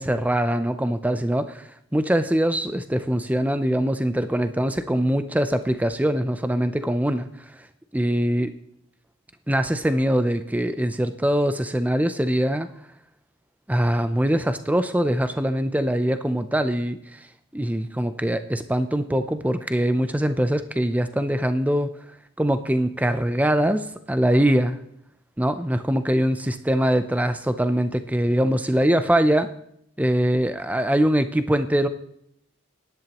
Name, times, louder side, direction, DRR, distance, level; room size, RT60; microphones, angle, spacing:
voice 1, 0.0-7.3 7.9-8.5 9.5-12.7 13.7-17.2 17.5-21.9 22.4-24.8 25.4-29.5 30.0-31.9, equal, 5° right, 10 dB, 0.5 m, -23 dB
16.5 x 11.0 x 3.0 m, 0.73 s
head